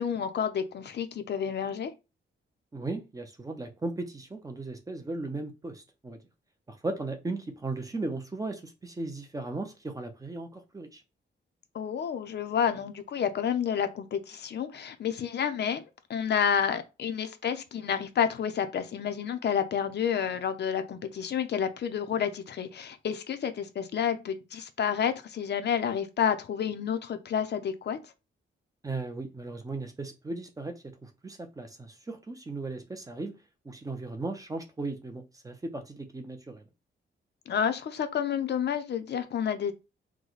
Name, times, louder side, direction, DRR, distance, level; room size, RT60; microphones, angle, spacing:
voice 1, 0.0-1.9 11.7-15.8 16.1-28.0 37.5-39.7, left 8 dB, 55° left, 0.6 m, -30 dB
voice 2, 2.7-6.2 6.7-11.0 28.8-33.3 33.6-36.7, right 2 dB, 15° right, 0.5 m, -37 dB
4.7 x 2.2 x 3.9 m
wide cardioid pair, 180°, 21 cm